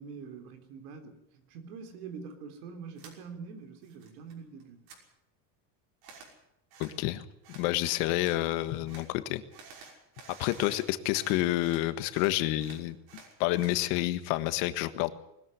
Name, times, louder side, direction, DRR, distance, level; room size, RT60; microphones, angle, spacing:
voice 1, 0.0-4.9, right 5 dB, 90° right, 7 dB, 3.9 m, -45 dB
sound 1, 3.0-3.2 3.6-4.3 4.6-5.0 6.0-6.3 6.7-7.0 7.4-7.7 8.2-8.4 8.9-9.1 9.5-11.8 12.1-13.8, right 5 dB, 55° right, 5.9 m, -51 dB
voice 2, 6.8-7.2 7.5-9.4 10.4-13.0 13.4-15.1, left 16 dB, 70° left, 11 dB, 1.6 m, -29 dB
20.5 x 13.5 x 9.7 m, 0.81 s
cardioid pair, 150°, 45 cm